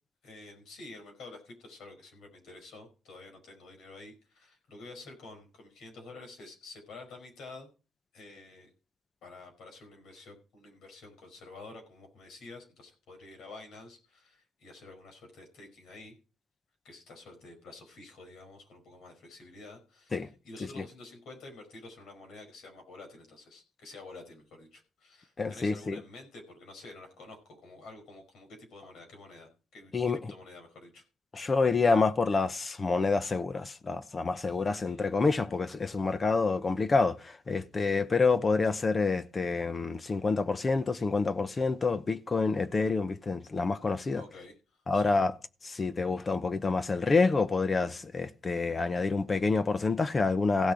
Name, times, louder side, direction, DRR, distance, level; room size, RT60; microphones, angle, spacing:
voice 1, 0.2-7.7 8.1-8.7 9.2-16.1 16.8-29.9 30.3-31.0 34.8-35.0 44.2-45.3, left 3 dB, 75° left, 5.0 m, -49 dB
voice 2, 25.4-26.0 29.9-30.3 31.3-44.2 44.9-45.3 45.6-50.7, left 4 dB, 30° left, 0.9 m, -28 dB
16.0 x 6.4 x 4.9 m
cardioid pair, 90°, 0 cm